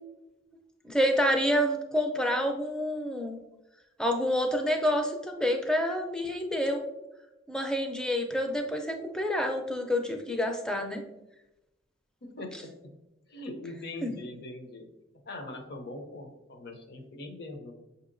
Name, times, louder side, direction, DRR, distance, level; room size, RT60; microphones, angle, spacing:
voice 1, 0.8-3.4 4.0-6.9 7.5-11.0 14.0-14.1, equal, 5° left, 4 dB, 0.4 m, -28 dB
voice 2, 12.2-12.9 13.3-14.9 15.3-17.7, left 2 dB, 55° left, 5 dB, 0.6 m, -41 dB
6.6 x 2.7 x 2.5 m, 0.98 s
head